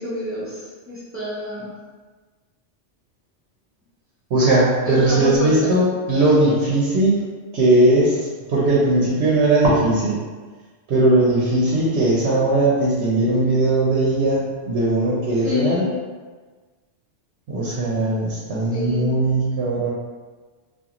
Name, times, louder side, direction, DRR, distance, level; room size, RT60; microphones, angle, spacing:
voice 1, 0.0-1.7 4.8-5.7 15.4-15.9 18.7-19.1, left 2 dB, 15° right, -10 dB, 0.5 m, -27 dB
voice 2, 4.3-7.2 7.5-8.2 8.5-10.2 10.9-15.8 17.5-19.9, right 2 dB, 80° right, -6 dB, 0.9 m, -18 dB
2.4 x 2.4 x 2.8 m, 1.4 s
omnidirectional pair, 1.1 m